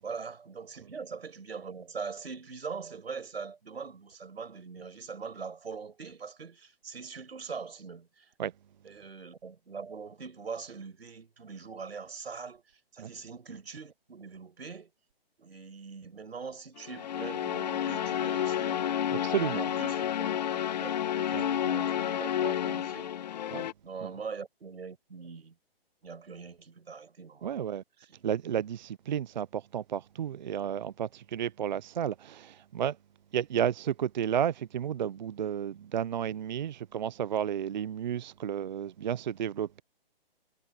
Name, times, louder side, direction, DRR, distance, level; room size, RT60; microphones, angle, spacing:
voice 1, 0.0-8.3 8.8-14.9 15.4-18.9 19.5-20.4 20.8-23.1 23.8-25.5 26.0-27.7 28.1-28.3, right 5 dB, 90° right, 6.7 m, -42 dB
sound 1, 16.8-23.7, left 10 dB, 45° left, 1.4 m, -30 dB
voice 2, 19.2-19.7 21.3-21.5 23.5-23.7 24.0-24.1 27.4-27.8 28.2-33.0 33.3-39.8, right 9 dB, 50° right, 0.5 m, -32 dB
hypercardioid pair, 160°, 30 cm